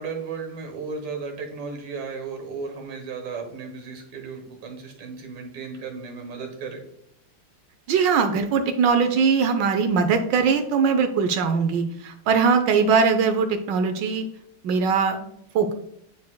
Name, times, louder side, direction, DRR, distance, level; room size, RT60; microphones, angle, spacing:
voice 1, 0.0-6.8, right 4 dB, 90° right, 3 dB, 2.2 m, -35 dB
voice 2, 7.9-14.2 14.6-15.7, right 5 dB, 75° right, 7 dB, 1.1 m, -21 dB
9.4 x 4.7 x 2.2 m, 0.74 s
omnidirectional pair, 2.4 m